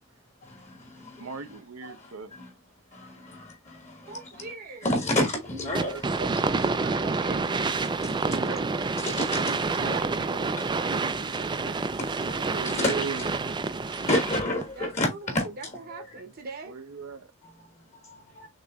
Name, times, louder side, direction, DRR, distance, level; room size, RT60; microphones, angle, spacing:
voice 1, 1.2-2.4 5.6-6.6 8.2-8.7 12.5-13.4 16.7-17.3, right 5 dB, 85° right, 0.9 m, -37 dB
voice 2, 4.0-4.9 6.8-7.7 9.7-11.8 14.7-16.8, right 3 dB, 45° right, 0.9 m, -41 dB
voice 3, 4.8-6.1 6.6-6.7 9.0-9.4 9.9-10.0 12.7-13.1 14.1-15.5 18.4-18.5, left 1 dB, 30° left, 1.3 m, -27 dB
sound 1, 5.8-14.7, right 4 dB, 20° right, 0.4 m, -28 dB
6.5 x 3.0 x 2.3 m
head